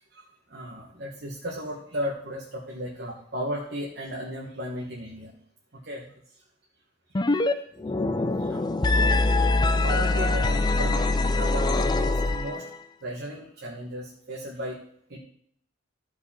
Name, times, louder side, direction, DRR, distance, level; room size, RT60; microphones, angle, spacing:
voice 1, 0.1-5.3 5.8-6.1 7.4-7.6 8.4-12.7 13.0-14.8 15.1-15.2, equal, 55° right, -3 dB, 1.5 m, -36 dB
sound 1, 7.1-7.5 7.8-12.8, left 2 dB, 20° left, 0.4 m, -23 dB
14.5 x 4.9 x 4.3 m, 0.66 s
head